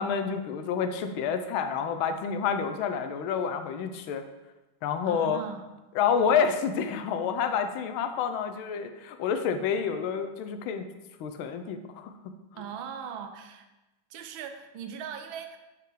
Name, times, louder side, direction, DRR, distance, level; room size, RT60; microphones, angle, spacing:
voice 1, 0.0-4.2 4.8-5.4 5.9-10.9 11.2-12.1, left 7 dB, 85° left, 8 dB, 1.4 m, -28 dB
voice 2, 5.0-5.7 12.6-13.7 14.1-15.6, right 7 dB, 80° right, 7 dB, 1.4 m, -39 dB
5.1 x 4.5 x 4.8 m, 1.0 s
omnidirectional pair, 2.2 m